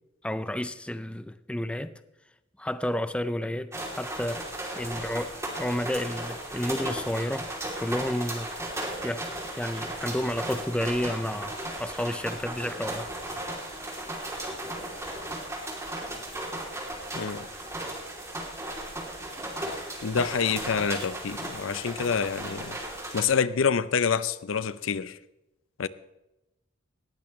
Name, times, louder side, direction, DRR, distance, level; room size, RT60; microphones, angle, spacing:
voice 1, 0.2-1.9 2.6-4.5 4.8-7.5 7.8-8.5 9.0-9.2 9.6-11.5 11.8-13.1, left 1 dB, 5° left, 0.4 m, -31 dB
sound 1, 3.7-23.2, right 1 dB, 15° right, 2.9 m, -36 dB
voice 2, 17.2-17.5 20.0-22.8 23.1-25.2 25.8-25.9, left 6 dB, 75° left, 0.6 m, -27 dB
19.0 x 15.0 x 3.2 m
head